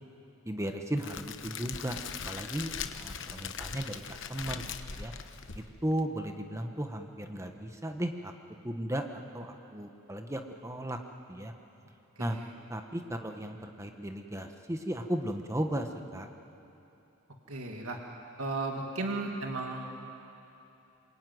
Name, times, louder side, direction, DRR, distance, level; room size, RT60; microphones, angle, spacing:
voice 1, 0.4-2.0 2.3-5.1 5.5-8.3 8.6-11.0 11.3-11.5 12.2-12.4 12.7-16.3, right 1 dB, 15° right, 5 dB, 1.1 m, -35 dB
Crackle, 1.0-6.0, left 6 dB, 60° left, 1.0 m, -40 dB
voice 2, 17.5-18.0 18.4-19.9, right 3 dB, 90° right, 1 dB, 2.4 m, -35 dB
26.5 x 23.0 x 9.4 m, 2.8 s
head